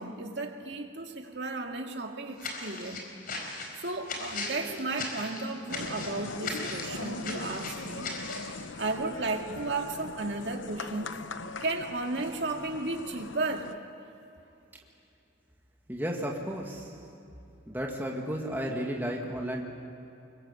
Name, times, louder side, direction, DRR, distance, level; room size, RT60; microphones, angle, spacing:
voice 1, 0.0-3.0 3.8-8.1 8.8-11.1 11.6-13.8, right 2 dB, 60° right, 2 dB, 2.3 m, -34 dB
sound 1, 2.4-8.5, left 3 dB, 45° left, 4.3 m, -38 dB
sound 2, 5.7-13.7, left 3 dB, 70° left, 0.9 m, -40 dB
voice 2, 15.9-17.0 17.7-19.6, equal, 10° right, -1 dB, 1.9 m, -33 dB
24.5 x 23.0 x 8.5 m, 2.8 s
head